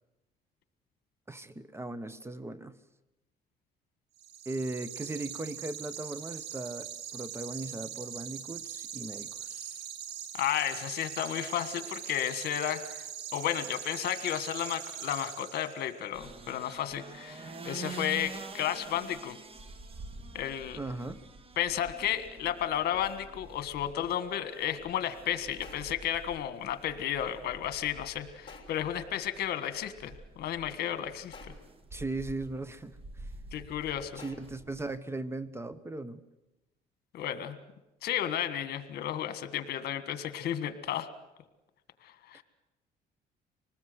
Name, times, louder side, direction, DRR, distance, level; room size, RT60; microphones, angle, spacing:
voice 1, 1.3-2.8 4.5-9.8 20.8-21.2 31.9-33.3 34.2-36.2 42.3-42.4, right 2 dB, 15° right, 15 dB, 1.0 m, -38 dB
sound 1, 4.2-16.0, right 9 dB, 85° right, 2.3 m, -42 dB
voice 2, 10.3-19.4 20.3-20.8 21.6-31.3 33.5-34.2 37.1-37.6 38.0-41.1 42.0-42.4, left 11 dB, 70° left, 11 dB, 1.6 m, -33 dB
sound 2, 16.1-35.0, right 3 dB, 35° right, 1.6 m, -47 dB
sound 3, 25.6-26.2 28.5-29.0 31.3-31.9 34.2-34.8, left 4 dB, 30° left, 5.7 m, -51 dB
25.5 x 19.5 x 8.0 m, 1.0 s
cardioid pair, 110°, 17 cm